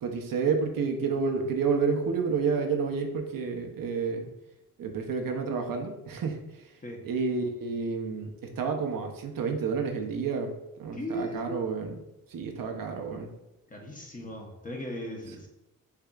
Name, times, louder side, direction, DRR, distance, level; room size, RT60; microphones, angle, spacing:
voice 1, 0.0-4.3 4.8-6.6 7.0-10.5 10.8-12.0 12.3-13.3, right 5 dB, 70° right, 3 dB, 0.8 m, -30 dB
voice 2, 10.9-11.6 13.7-15.5, equal, 25° left, 0 dB, 0.9 m, -37 dB
6.6 x 2.8 x 2.3 m, 0.91 s
cardioid pair, 90°, 35 cm